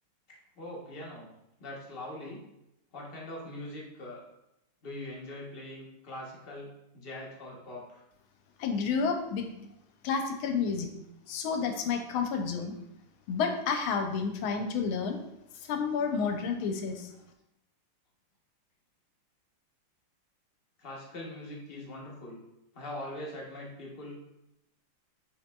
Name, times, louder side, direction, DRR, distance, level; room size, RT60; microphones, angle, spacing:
voice 1, 0.3-1.3 1.6-2.4 2.9-4.2 4.8-8.0 20.8-22.4 22.7-24.2, left 1 dB, 65° left, -3 dB, 0.5 m, -42 dB
voice 2, 8.6-9.5 10.0-10.9 11.3-12.7 13.3-15.2 15.7-17.1, left 5 dB, 80° left, 5 dB, 1.4 m, -30 dB
5.7 x 4.2 x 2.2 m, 0.85 s
omnidirectional pair, 2.4 m